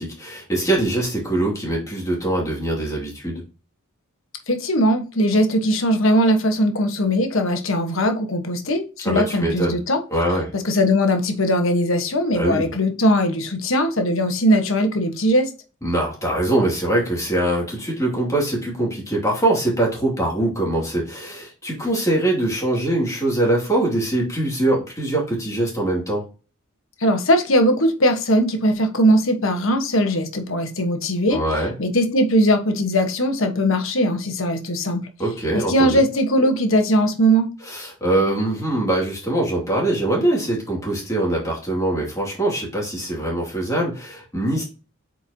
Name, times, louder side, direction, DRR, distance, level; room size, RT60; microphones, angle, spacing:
voice 1, 0.0-3.4 9.0-9.8 10.1-10.5 12.3-12.7 15.8-26.2 31.3-31.7 35.2-36.0 37.6-44.6, right 1 dB, 15° left, 2.6 m, -23 dB
voice 2, 4.5-10.0 10.5-15.5 27.0-31.4 31.8-35.1 35.5-37.5, equal, 70° left, 1.4 m, -20 dB
8.2 x 4.5 x 2.9 m
head